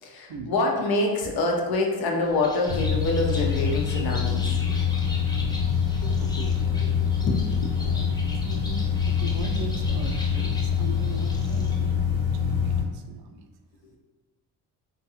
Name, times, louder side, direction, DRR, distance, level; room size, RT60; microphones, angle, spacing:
voice 1, 0.0-4.8 6.0-6.5 6.7-7.7, left 2 dB, 60° left, 0 dB, 0.7 m, -27 dB
Bird, 2.2-11.9, left 2 dB, 10° left, 0.3 m, -41 dB
sound 1, 2.7-12.8, left 7 dB, 85° left, 1.2 m, -25 dB
voice 2, 7.8-8.2 8.4-13.4, right 4 dB, 65° right, 5 dB, 0.5 m, -39 dB
2.4 x 2.2 x 2.8 m, 1.2 s
supercardioid pair, 75°, 41 cm